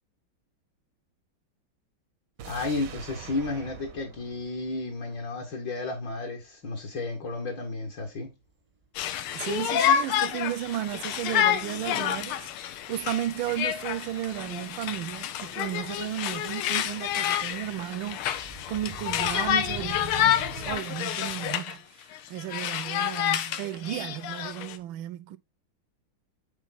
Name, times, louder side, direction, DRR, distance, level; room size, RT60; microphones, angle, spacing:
voice 1, 2.4-8.3, left 3 dB, 60° left, 2.2 m, -32 dB
sound 1, 2.4-5.5 5.8-5.9, right 9 dB, 60° right, 0.9 m, -45 dB
sound 2, 4.7-4.8 6.8-8.1 8.5-9.1 9.3-20.8, right 5 dB, 25° right, 0.7 m, -46 dB
Conversation, 9.0-21.7 22.1-24.8, left 10 dB, 85° left, 1.6 m, -29 dB
voice 2, 9.3-25.4, right 13 dB, 75° right, 1.3 m, -34 dB
7.4 x 3.9 x 4.0 m
omnidirectional pair, 2.3 m